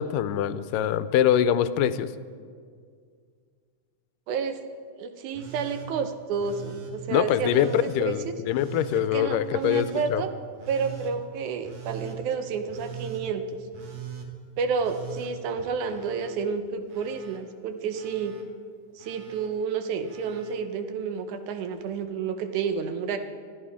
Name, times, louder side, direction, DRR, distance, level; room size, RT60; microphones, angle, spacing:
voice 1, 0.0-2.1 7.1-10.2, left 10 dB, 85° left, 13 dB, 2.2 m, -24 dB
voice 2, 4.3-4.6 5.0-8.3 8.9-10.3 10.7-13.4 14.6-18.3 19.0-23.2, right 5 dB, 70° right, 8 dB, 2.2 m, -30 dB
Telephone, 5.3-5.9 6.4-6.9 7.4-8.0 8.5-9.0 9.5-10.1 10.6-11.1 11.6-12.2 12.7-13.2 13.7-14.3 14.8-16.3 16.6-17.4 17.9-18.4 19.0-19.5 20.0-20.5 21.7-21.8, right 7 dB, 55° right, 1.9 m, -41 dB
24.0 x 14.0 x 3.6 m, 2.1 s
omnidirectional pair, 3.8 m